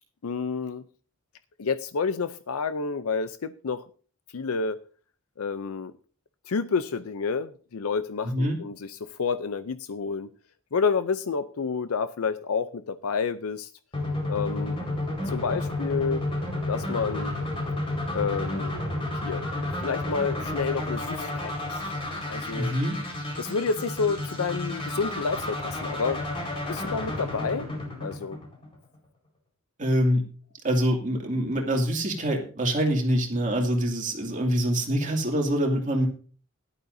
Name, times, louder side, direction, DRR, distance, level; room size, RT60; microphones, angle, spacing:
voice 1, 0.2-0.8 1.6-3.9 4.3-4.8 5.4-5.9 6.5-10.3 10.7-13.7 14.3-14.8 15.3-16.3 16.7-17.3 18.1-18.8 19.2-19.5 19.8-21.8 22.2-22.7 23.4-26.2 26.7-27.7 28.0-28.4, left 5 dB, 90° left, 0.6 m, -29 dB
voice 2, 8.2-8.6 22.6-23.0 29.8-30.3 30.6-36.1, equal, 35° right, 2.5 m, -25 dB
sound 1, 13.9-28.9, left 1 dB, 25° left, 4.5 m, -31 dB
17.5 x 11.5 x 2.7 m
head